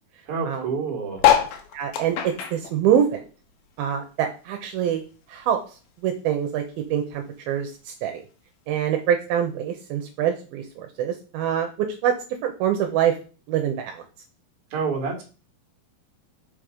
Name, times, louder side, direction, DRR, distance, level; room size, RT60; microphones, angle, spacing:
voice 1, 0.3-1.2 14.7-15.2, right 5 dB, 40° right, 0 dB, 2.7 m, -28 dB
sound 1, 1.2-3.9 4.3-5.8 6.3-6.4 6.5-6.6 6.8-7.2 8.0-8.1, left 10 dB, 75° left, 2.8 m, -24 dB
voice 2, 1.7-3.2 3.8-5.0 5.3-5.6 6.0-6.6 6.9-8.2 8.7-12.1 12.4-13.2 13.5-14.0, right 9 dB, 80° right, 4 dB, 2.6 m, -25 dB
6.0 x 5.3 x 5.0 m, 0.36 s
omnidirectional pair, 4.5 m